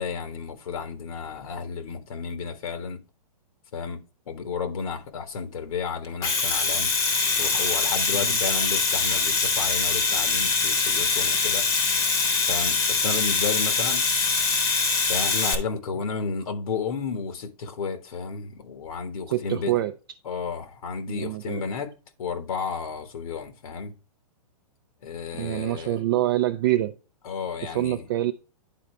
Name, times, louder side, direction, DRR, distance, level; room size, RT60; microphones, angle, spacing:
voice 1, 0.0-3.0 3.7-6.9 7.4-11.7 12.5-14.0 15.1-19.8 20.2-21.9 22.2-23.9 25.0-26.0 27.2-28.1, left 5 dB, 60° left, 1.4 m, -32 dB
Domestic sounds home sounds, 6.0-15.5, left 4 dB, 15° left, 1.0 m, -23 dB
voice 2, 19.3-19.9 21.1-21.6 25.3-26.9 27.6-28.3, right 14 dB, 35° right, 0.5 m, -26 dB
10.0 x 4.0 x 3.2 m
hypercardioid pair, 160°, 21 cm